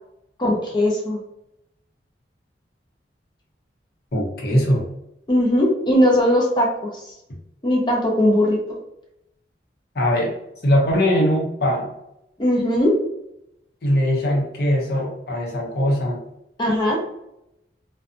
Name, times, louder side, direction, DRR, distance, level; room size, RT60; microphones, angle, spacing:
voice 1, 0.4-1.2 5.3-6.7 6.9-7.1 7.6-8.6 12.4-12.9 16.6-17.0, left 1 dB, 25° left, -2 dB, 0.6 m, -19 dB
voice 2, 4.1-4.8 9.9-10.3 10.6-11.9 13.8-16.2, equal, 60° left, -1 dB, 0.8 m, -20 dB
2.6 x 2.2 x 2.5 m, 0.82 s
head